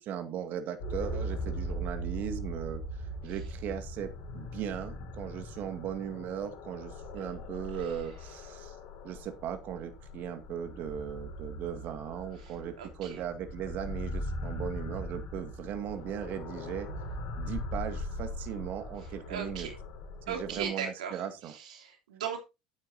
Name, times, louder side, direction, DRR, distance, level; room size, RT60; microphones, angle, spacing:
voice 1, 0.0-8.8 9.0-16.9 17.4-19.7 20.3-21.6, right 9 dB, 50° right, 8 dB, 2.1 m, -38 dB
sound 1, 0.8-20.7, left 1 dB, 65° left, 7.2 m, -40 dB
voice 2, 12.8-13.2 19.3-19.7 20.3-22.4, right 7 dB, 80° right, 2 dB, 3.3 m, -38 dB
11.5 x 9.4 x 2.8 m, 0.25 s
hypercardioid pair, 80°, 4 cm